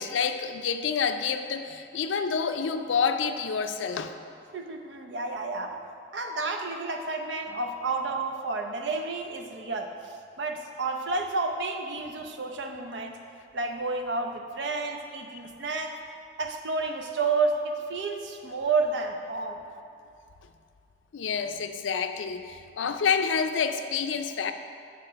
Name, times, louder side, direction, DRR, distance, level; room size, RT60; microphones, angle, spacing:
voice 1, 0.0-4.1 21.1-24.5, left 6 dB, 85° left, 8 dB, 0.4 m, -28 dB
voice 2, 4.5-5.8 6.1-13.2 13.5-16.0 16.4-19.6 22.8-23.0, right 3 dB, 70° right, 4 dB, 0.6 m, -30 dB
8.3 x 3.7 x 5.7 m, 2.4 s
head